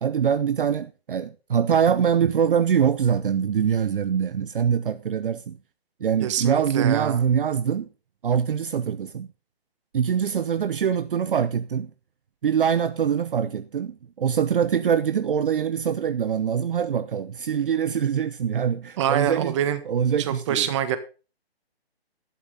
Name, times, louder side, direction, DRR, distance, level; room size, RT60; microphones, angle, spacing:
voice 1, 0.0-5.6 6.0-7.9 8.2-9.3 9.9-11.9 12.4-19.5 19.9-20.7, right 8 dB, 55° right, 0.8 m, -23 dB
voice 2, 6.2-7.2 19.0-19.8 20.2-21.0, right 10 dB, 30° right, 1.5 m, -25 dB
12.0 x 11.0 x 4.0 m
hypercardioid pair, 155°, 31 cm